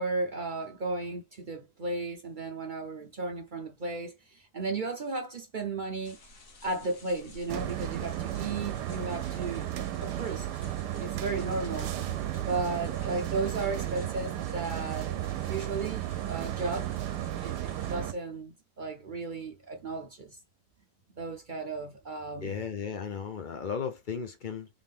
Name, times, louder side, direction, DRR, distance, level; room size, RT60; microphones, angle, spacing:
voice 1, 0.0-6.2 6.6-9.7 10.0-10.5 11.0-12.0 12.4-15.2 15.5-16.9 17.4-20.4 21.2-22.6, right 3 dB, 50° right, 0.6 m, -35 dB
sound 1, 6.0-18.0, left 3 dB, 55° left, 1.5 m, -54 dB
sound 2, 7.5-18.1, right 12 dB, 80° right, 1.2 m, -34 dB
voice 2, 22.4-24.7, left 6 dB, 75° left, 0.4 m, -35 dB
3.6 x 3.6 x 2.5 m
omnidirectional pair, 1.8 m